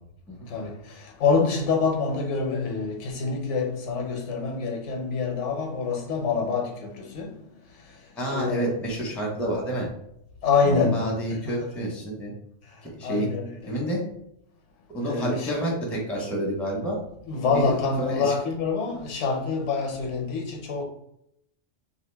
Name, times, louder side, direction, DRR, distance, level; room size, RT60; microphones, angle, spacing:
voice 1, 1.2-7.3 8.3-8.7 10.4-11.0 11.4-11.5 13.0-13.7 15.0-15.6 17.3-20.8, left 4 dB, 75° left, 1.0 m, -26 dB
voice 2, 8.2-9.9 10.6-12.3 12.8-13.3 13.7-14.0 14.9-17.0 17.5-17.7 18.0-18.3, right 1 dB, ahead, 0.6 m, -29 dB
2.8 x 2.4 x 3.2 m
omnidirectional pair, 1.2 m